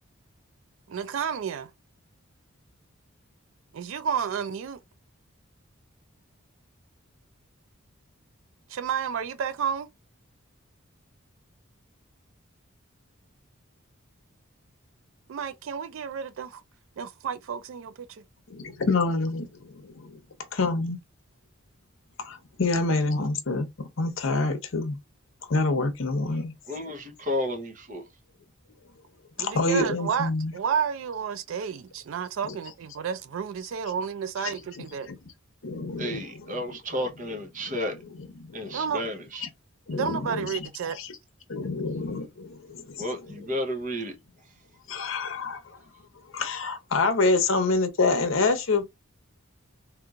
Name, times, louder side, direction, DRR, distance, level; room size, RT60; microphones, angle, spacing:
voice 1, 0.9-1.7 3.7-4.8 8.7-9.9 15.3-16.6 17.0-18.2 29.4-35.1 38.7-39.0 39.9-41.0, right 7 dB, 70° right, 0.4 m, -31 dB
voice 2, 18.5-20.2 20.5-21.0 22.2-25.0 25.5-26.5 29.4-30.5 32.5-32.6 34.4-34.8 35.6-36.6 37.7-37.8 38.4-38.8 39.4-39.5 39.9-40.7 40.9-41.1 41.5-43.1 44.9-45.6 46.3-48.8, left 3 dB, 65° left, 0.8 m, -27 dB
voice 3, 26.7-28.1 36.0-37.9 38.5-39.4 43.0-44.2, equal, 40° right, 0.9 m, -32 dB
3.3 x 2.9 x 2.4 m
head